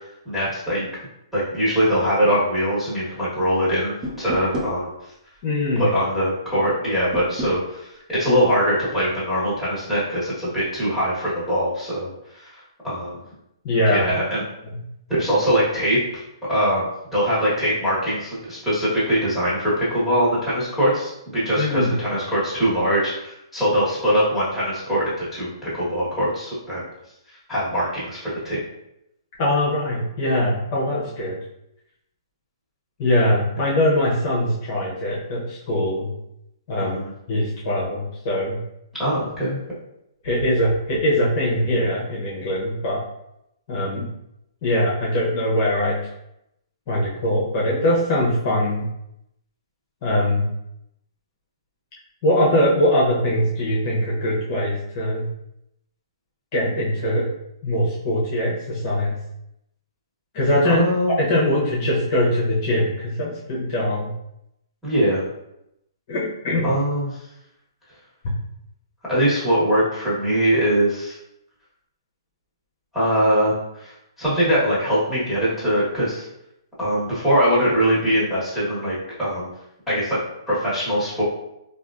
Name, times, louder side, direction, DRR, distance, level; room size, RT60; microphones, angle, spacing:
voice 1, 0.2-0.9 1.3-4.9 5.8-12.6 12.8-13.2 13.9-14.4 15.1-16.2 16.5-26.8 27.5-28.6 36.8-37.1 39.0-39.6 60.6-61.2 64.8-65.2 66.6-67.1 69.1-71.2 72.9-76.3 76.8-79.5 79.9-80.2 80.5-81.2, equal, ahead, -12 dB, 1.4 m, -22 dB
sound 1, 4.0-4.8 7.1-7.6, equal, 20° right, 0.4 m, -30 dB
voice 2, 5.4-5.9 13.6-14.1 14.7-14.8 21.6-21.9 29.4-31.4 33.0-36.1 36.7-37.0 37.3-38.6 40.2-43.0 43.7-44.1 44.6-46.0 46.9-48.9 50.0-50.5 52.2-55.3 56.5-57.3 57.6-59.2 60.3-60.9 61.2-64.1 66.1-66.7, left 1 dB, 40° left, -5 dB, 0.8 m, -22 dB
3.2 x 2.4 x 2.4 m, 0.83 s
hypercardioid pair, 145°, 3 cm